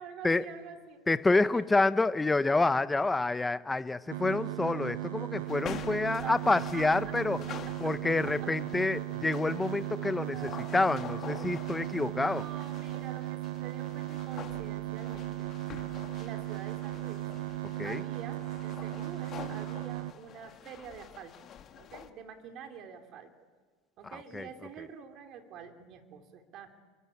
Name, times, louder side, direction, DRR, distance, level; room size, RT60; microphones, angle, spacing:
voice 1, 0.0-1.0 1.5-1.6 2.4-2.8 5.9-7.2 7.6-7.7 8.0-8.5 10.3-10.8 11.9-15.5 16.1-17.3 17.8-21.3 21.8-23.3 24.0-26.7, right 7 dB, 45° right, 6 dB, 3.1 m, -47 dB
voice 2, 1.1-7.4 7.8-12.4 17.8-18.0 24.3-24.5, left 3 dB, 10° left, 13 dB, 0.8 m, -28 dB
sound 1, 4.1-20.1, right 17 dB, 80° right, 0.7 m, -37 dB
sound 2, 5.5-22.1, left 9 dB, 35° left, 1.6 m, -47 dB
29.0 x 23.0 x 8.7 m, 1.5 s
supercardioid pair, 140°, 0 cm